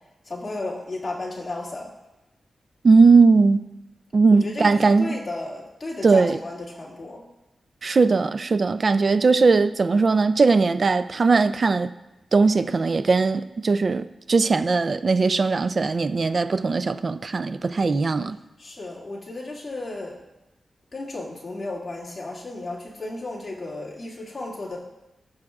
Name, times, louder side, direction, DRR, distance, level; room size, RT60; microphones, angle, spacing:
voice 1, 0.3-1.9 4.3-7.2 18.6-20.2 20.9-24.8, left 2 dB, 30° left, 2.1 m, -34 dB
voice 2, 2.8-3.7 4.1-5.2 6.0-6.4 7.8-11.9 12.3-18.4, right 4 dB, 45° right, 0.3 m, -19 dB
15.5 x 6.3 x 2.4 m
wide cardioid pair, 130°, 0 cm